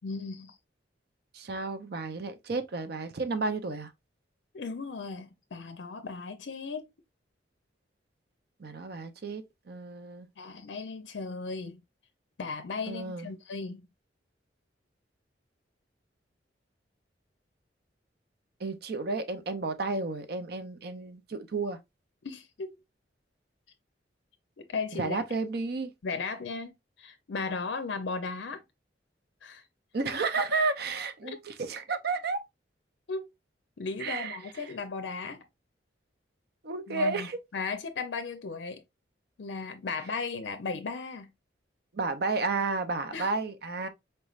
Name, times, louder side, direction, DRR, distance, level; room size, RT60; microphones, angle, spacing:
voice 1, 0.0-0.5 4.5-6.9 10.4-11.8 12.4-13.9 22.2-22.8 24.6-25.2 26.0-28.6 29.4-29.6 31.2-31.4 33.1-33.2 33.8-35.4 36.9-37.3 37.5-38.8 39.4-41.3 43.1-43.3, left 4 dB, 65° left, 0.5 m, -36 dB
voice 2, 1.3-3.9 8.6-10.3 12.9-13.3 18.6-21.8 24.9-25.9 29.9-32.4 34.0-34.4 34.6-34.7 36.6-37.4 41.9-43.9, right 3 dB, 55° right, 0.5 m, -32 dB
4.4 x 3.1 x 2.4 m
head